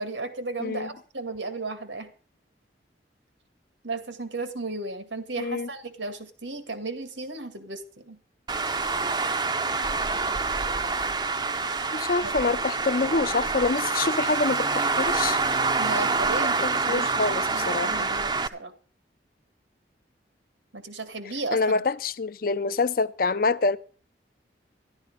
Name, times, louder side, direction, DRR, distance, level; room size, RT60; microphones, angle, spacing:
voice 1, 0.0-2.1 3.8-8.2 12.2-12.3 15.8-18.7 20.7-21.8, right 3 dB, 90° right, 2.1 m, -34 dB
voice 2, 0.6-0.9 5.4-5.7 11.9-15.4 16.4-18.1 21.5-23.8, left 3 dB, 50° left, 0.6 m, -26 dB
Traffic noise roadway noise, 8.5-18.5, right 4 dB, 25° right, 0.6 m, -26 dB
13.0 x 12.0 x 5.2 m
head